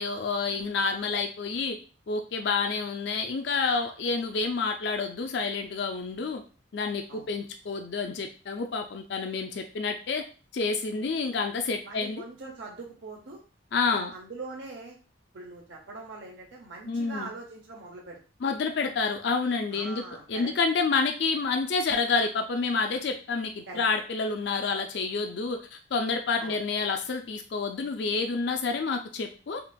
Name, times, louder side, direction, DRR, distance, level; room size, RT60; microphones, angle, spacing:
voice 1, 0.0-1.8 2.1-6.4 6.7-10.2 10.5-12.2 13.7-14.1 16.9-17.3 18.4-20.0 20.3-29.6, left 4 dB, 60° left, 5 dB, 0.4 m, -29 dB
voice 2, 11.8-13.4 13.9-15.0 15.3-18.2 19.7-20.5 23.7-23.8 26.4-26.6, right 3 dB, 70° right, -1 dB, 0.7 m, -42 dB
5.6 x 2.5 x 2.2 m, 0.35 s
head